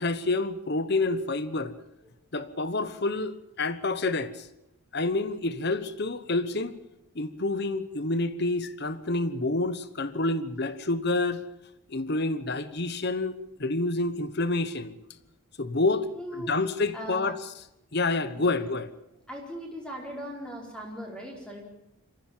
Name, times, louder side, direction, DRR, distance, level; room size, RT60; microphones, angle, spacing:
voice 1, 0.0-1.7 2.3-4.5 4.9-6.7 7.1-11.4 11.9-14.9 15.6-17.4 17.9-18.9, left 2 dB, 45° left, 1.1 m, -28 dB
voice 2, 16.1-16.5 16.9-17.3 18.4-18.5 19.3-21.7, equal, 5° left, 4.6 m, -39 dB
23.5 x 15.5 x 8.9 m
head